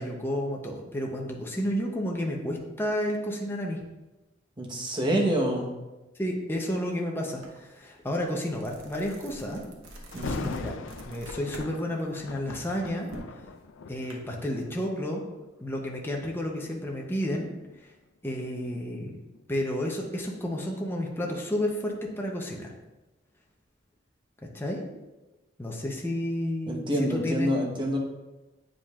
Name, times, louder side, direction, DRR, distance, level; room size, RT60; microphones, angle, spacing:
voice 1, 0.0-3.8 6.2-9.7 10.2-10.7 11.1-13.1 13.9-15.2 15.6-17.5 18.2-19.2 19.5-22.7 24.4-24.8 25.6-27.5, left 1 dB, 10° left, -1 dB, 0.6 m, -31 dB
voice 2, 4.6-5.7 10.1-10.5 26.7-28.0, equal, 25° right, -1 dB, 1.0 m, -27 dB
sound 1, 7.4-7.6 8.0-11.7 12.1-14.1, right 1 dB, 90° right, 1.0 m, -46 dB
Thunder, 10.1-15.1 15.7-16.0 16.6-19.4 19.8-19.9, left 4 dB, 70° left, 0.4 m, -41 dB
8.6 x 5.1 x 2.4 m, 1.1 s
head